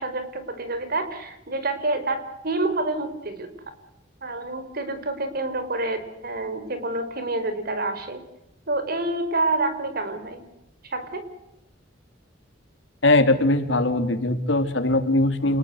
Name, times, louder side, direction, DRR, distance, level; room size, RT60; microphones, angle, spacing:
voice 1, 0.0-3.5 4.2-8.2 8.7-10.4 10.9-11.3, right 2 dB, 55° right, 10 dB, 4.8 m, -28 dB
voice 2, 13.0-15.6, left 2 dB, 80° left, 8 dB, 3.4 m, -20 dB
29.0 x 20.0 x 8.1 m, 0.87 s
head